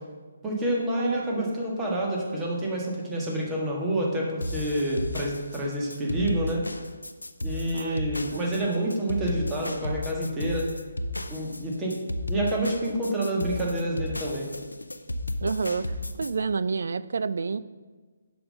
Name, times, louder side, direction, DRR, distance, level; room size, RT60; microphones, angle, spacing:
voice 1, 0.4-6.6 7.4-10.7 11.3-12.0 12.3-14.5, right 1 dB, 15° right, -3 dB, 1.6 m, -28 dB
voice 2, 1.0-1.5 7.7-8.0 8.3-8.5 15.4-17.6, right 4 dB, 60° right, 15 dB, 0.3 m, -30 dB
sound 1, 4.4-16.3, left 1 dB, 85° left, 0.5 m, -33 dB
6.7 x 5.5 x 5.4 m, 1.4 s
figure-of-eight pair, 140°, 0 cm